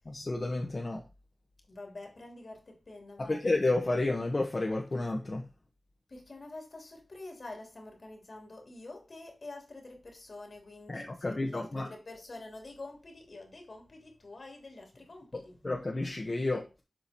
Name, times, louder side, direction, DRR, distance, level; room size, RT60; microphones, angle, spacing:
voice 1, 0.1-1.0 3.2-5.4 10.9-11.9 15.6-16.6, left 2 dB, 50° left, 1.4 m, -31 dB
voice 2, 1.7-3.4 6.1-15.6, left 2 dB, 65° left, 3.0 m, -47 dB
7.9 x 5.0 x 4.4 m
wide cardioid pair, 50°, 0 cm